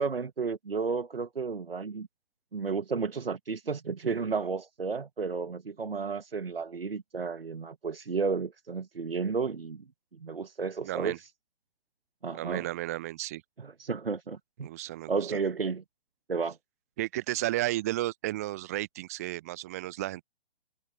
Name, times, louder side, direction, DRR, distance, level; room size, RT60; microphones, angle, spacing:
voice 1, 0.0-2.1 2.5-9.8 10.1-11.2 12.2-12.7 13.6-14.7 15.1-15.8 16.3-16.6, right 5 dB, 70° right, 1.4 m, -32 dB
voice 2, 10.8-11.2 12.3-13.4 14.6-15.4 17.0-20.2, right 16 dB, 15° right, 0.5 m, -33 dB
figure-of-eight pair, 130°, 30 cm